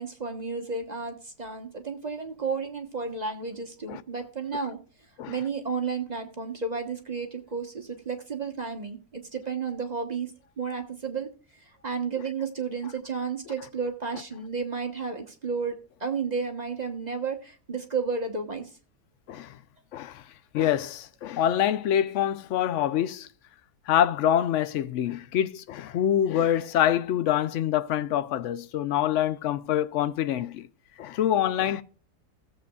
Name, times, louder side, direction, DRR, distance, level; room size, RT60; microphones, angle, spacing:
voice 1, 0.0-4.8 5.3-10.3 10.6-11.3 11.6-15.7 16.0-18.7, right 5 dB, 30° right, 1.0 m, -32 dB
voice 2, 19.9-20.2 20.5-23.3 23.9-30.7 31.0-31.8, left 10 dB, 70° left, 0.7 m, -25 dB
16.5 x 7.7 x 2.3 m
omnidirectional pair, 1.8 m